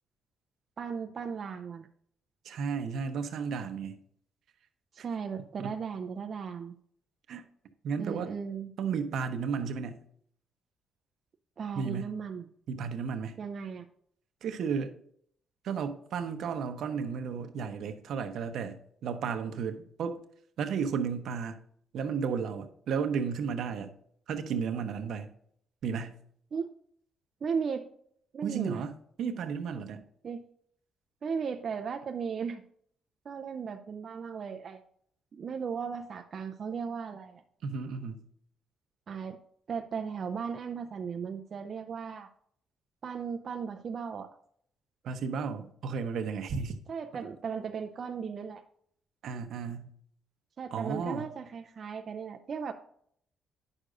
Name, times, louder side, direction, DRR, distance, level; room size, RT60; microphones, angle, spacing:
voice 1, 0.8-1.9 4.9-6.7 8.0-8.7 11.6-12.4 13.4-13.9 26.5-26.7 27.4-27.9 28.3-28.8 30.2-30.4 31.2-32.6 33.3-34.8 35.3-37.4 39.1-39.4 39.7-42.3 43.0-44.3 46.9-48.6 50.6-52.7, right 6 dB, 50° right, 0.5 m, -36 dB
voice 2, 2.4-4.0 5.0-5.1 5.6-5.8 7.3-7.4 7.8-8.3 8.8-10.0 11.7-12.1 12.7-13.4 14.4-14.9 15.6-18.8 19.0-20.2 20.6-21.6 21.9-23.9 24.3-25.3 25.8-26.1 28.4-30.0 37.6-38.2 45.0-46.8 49.2-49.9 50.7-51.3, right 6 dB, 75° right, 0.8 m, -33 dB
9.6 x 6.5 x 2.5 m
cardioid pair, 90°, 0 cm